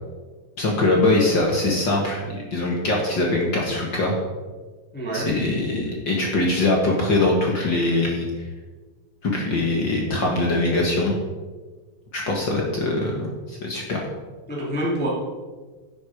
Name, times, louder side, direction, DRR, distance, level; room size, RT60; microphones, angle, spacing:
voice 1, 0.6-4.1 5.1-8.5 9.2-11.1 12.1-14.0, left 2 dB, 50° left, -1 dB, 1.6 m, -22 dB
voice 2, 4.9-5.3 14.5-15.1, right 1 dB, 5° left, -6 dB, 2.1 m, -26 dB
10.5 x 8.3 x 5.0 m, 1.3 s
omnidirectional pair, 3.8 m